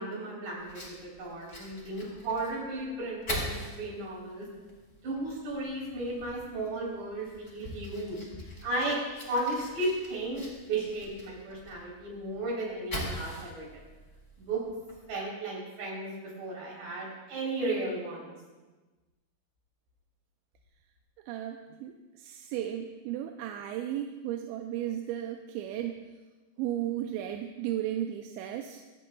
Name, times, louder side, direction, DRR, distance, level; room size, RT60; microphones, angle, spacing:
voice 1, 0.0-4.5 5.0-8.2 8.6-9.0 9.3-13.8 14.4-14.6 15.1-18.3, right 2 dB, 60° right, -4 dB, 5.6 m, -34 dB
Fire, 0.6-15.2, left 1 dB, 25° left, 1.7 m, -43 dB
voice 2, 21.3-26.0 26.6-28.8, right 11 dB, 85° right, 4 dB, 2.7 m, -35 dB
25.5 x 8.9 x 2.3 m, 1.2 s
omnidirectional pair, 5.3 m